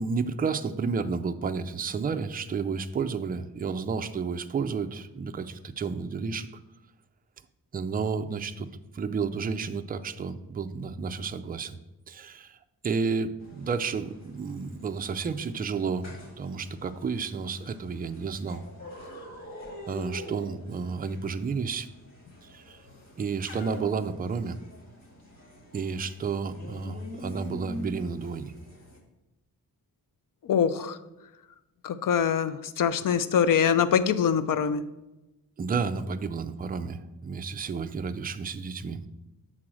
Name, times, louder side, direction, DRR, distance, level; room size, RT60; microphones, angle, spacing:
voice 1, 0.0-6.5 7.7-8.7 8.9-11.8 12.1-12.6 12.8-16.1 16.4-18.6 19.9-21.9 22.5-22.8 23.2-24.6 25.7-28.5 35.6-39.1, right 5 dB, 25° right, 9 dB, 0.4 m, -31 dB
sound 1, 13.4-29.0, left 1 dB, 45° left, 2.1 m, -45 dB
voice 2, 30.4-31.0 31.8-34.8, left 7 dB, 60° left, 13 dB, 0.5 m, -24 dB
7.5 x 3.9 x 6.1 m, 1.0 s
wide cardioid pair, 125°, 36 cm